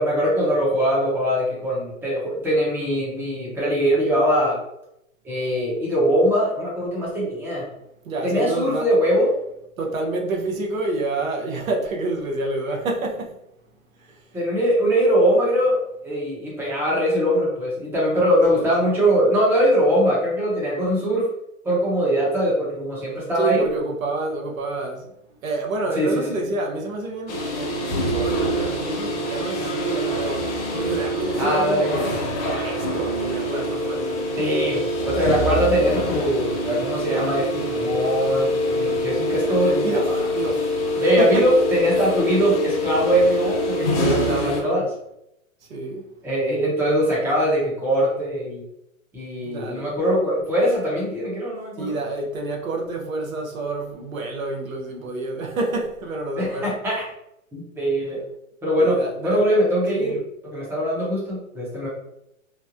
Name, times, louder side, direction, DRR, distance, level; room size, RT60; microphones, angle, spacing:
voice 1, 0.0-4.6 5.2-7.7 8.2-9.3 14.3-21.3 21.6-23.6 26.0-26.4 31.4-31.9 34.4-40.2 41.0-44.9 46.2-48.6 49.1-52.0 56.4-57.0 57.5-58.2 58.6-61.9, equal, 5° right, 0.8 m, -22 dB
voice 2, 8.0-8.9 9.8-13.4 14.0-14.2 18.5-18.7 23.3-25.1 25.4-32.1 32.4-34.3 39.4-41.4 43.9-44.9 45.7-46.0 49.4-50.0 51.8-56.7 58.8-59.4 60.0-60.2, right 2 dB, 75° right, 0.9 m, -28 dB
sound 1, 27.3-44.6, equal, 45° left, 1.2 m, -25 dB
3.2 x 2.1 x 2.5 m
hypercardioid pair, 125°, 41 cm